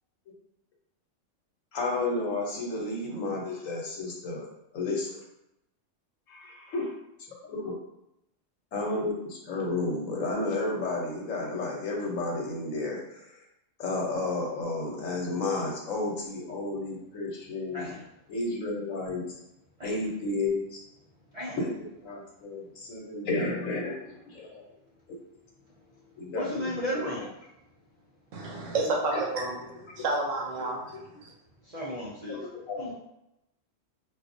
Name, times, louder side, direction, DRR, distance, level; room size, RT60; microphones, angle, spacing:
voice 1, 1.7-4.5 4.7-5.2 6.3-6.9 7.4-7.7 8.7-13.4 13.8-17.8 18.3-19.2 19.8-20.8 21.6-21.7 22.0-24.6 25.1-25.2 26.2-27.2 29.1-29.2 30.6-30.7 32.3-32.9, left 2 dB, 85° left, -1 dB, 1.2 m, -32 dB
voice 2, 26.3-27.3 31.6-32.4 32.8-32.9, left 1 dB, 55° right, -5 dB, 0.4 m, -34 dB
voice 3, 28.3-30.9 31.2-31.3, right 2 dB, 85° right, 0 dB, 1.1 m, -30 dB
4.1 x 2.3 x 2.6 m, 0.84 s
omnidirectional pair, 1.3 m